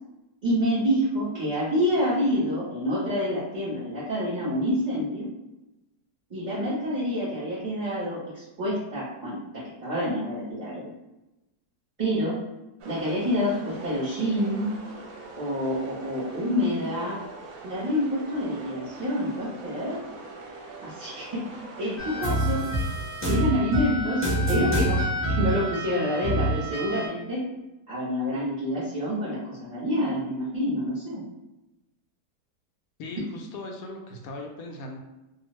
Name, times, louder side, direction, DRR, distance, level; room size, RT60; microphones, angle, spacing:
voice 1, 0.4-5.3 6.3-10.9 12.0-12.3 12.8-14.7 15.4-17.2 17.6-20.0 20.8-21.5 21.8-22.6 23.2-25.1 25.4-27.4 27.9-31.2, equal, 35° right, -10 dB, 0.8 m, -27 dB
sound 1, 12.8-22.4, right 3 dB, 70° right, 1.0 m, -43 dB
sound 2, 22.0-27.1, right 1 dB, 10° left, 0.8 m, -27 dB
voice 2, 33.0-35.0, left 2 dB, 70° left, 2 dB, 0.9 m, -38 dB
2.7 x 2.3 x 3.0 m, 0.98 s
omnidirectional pair, 1.7 m